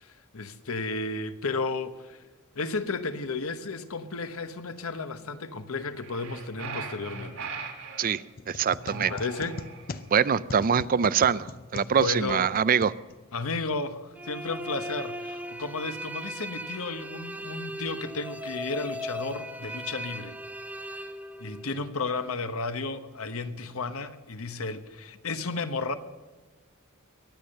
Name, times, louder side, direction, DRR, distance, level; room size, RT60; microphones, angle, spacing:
voice 1, 0.0-2.2 2.5-7.4 9.1-9.6 11.9-12.6 13.3-20.4 20.9-21.1 21.4-25.9, left 3 dB, 70° left, 1.1 m, -33 dB
sound 1, 6.0-8.1 8.8-10.0, right 4 dB, 85° right, 3.4 m, -39 dB
sound 2, 8.3-13.5, left 3 dB, 40° left, 0.6 m, -41 dB
voice 2, 8.5-9.1 10.1-12.9, right 7 dB, 40° right, 0.4 m, -24 dB
sound 3, 14.2-21.9, equal, 5° right, 0.9 m, -38 dB
22.5 x 8.8 x 6.6 m
head